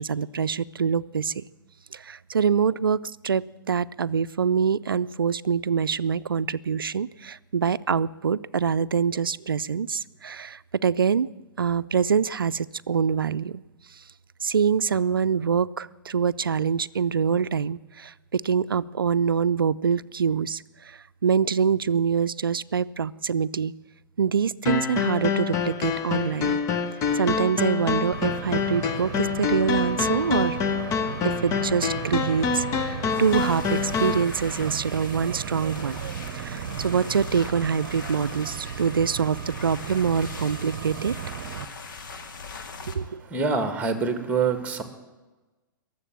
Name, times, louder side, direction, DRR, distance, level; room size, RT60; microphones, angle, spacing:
voice 1, 0.0-1.4 1.9-3.0 3.2-11.3 11.6-13.6 14.4-23.7 24.2-26.6 27.1-30.6 31.2-36.0 36.3-41.1 42.9-43.2, right 6 dB, 85° right, 17 dB, 0.4 m, -25 dB
sound 1, 24.7-34.2, left 5 dB, 30° left, 1.0 m, -26 dB
sound 2, 28.1-41.6, right 9 dB, 55° right, 0.8 m, -35 dB
sound 3, 33.1-42.9, left 4 dB, 65° left, 2.0 m, -41 dB
voice 2, 43.2-44.8, right 5 dB, 10° right, 8 dB, 1.9 m, -25 dB
22.0 x 7.6 x 7.4 m, 1.2 s
hypercardioid pair, 115°, 11 cm